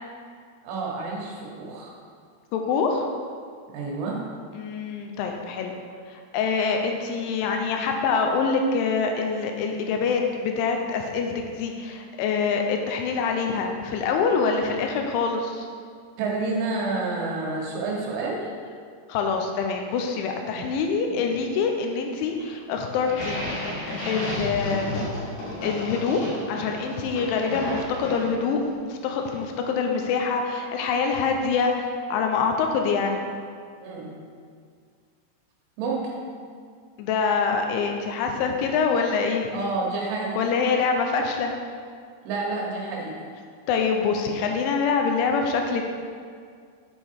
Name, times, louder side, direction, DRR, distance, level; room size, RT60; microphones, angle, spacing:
voice 1, 0.6-1.9 3.7-4.2 16.2-18.5 20.5-20.6 21.1-21.2 33.8-34.1 35.8-36.1 39.5-40.4 42.2-43.1, right 3 dB, 85° right, -3 dB, 3.8 m, -29 dB
voice 2, 2.5-3.1 4.5-5.7 6.1-15.7 19.1-23.5 24.1-25.2 25.6-26.2 26.5-33.3 37.0-39.5 40.4-41.5 43.7-45.9, left 5 dB, 85° left, 3 dB, 3.1 m, -25 dB
sound 1, 23.0-28.5, left 1 dB, 55° left, 3.4 m, -32 dB
8.4 x 5.4 x 4.6 m, 2.1 s
omnidirectional pair, 5.5 m